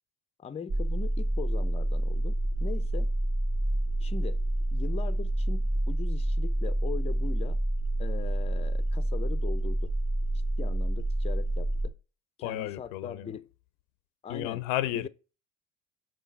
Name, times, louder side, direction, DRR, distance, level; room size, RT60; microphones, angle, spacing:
voice 1, 0.4-3.1 4.0-4.4 4.7-7.6 8.0-9.9 10.6-11.9 12.4-13.5 14.2-14.6 14.9-15.1, left 6 dB, 15° left, 0.4 m, -40 dB
sound 1, 0.7-11.9, right 1 dB, 30° right, 0.7 m, -28 dB
voice 2, 12.4-13.3 14.3-15.1, left 14 dB, 80° left, 0.6 m, -32 dB
6.2 x 3.9 x 5.2 m
hypercardioid pair, 70°, 39 cm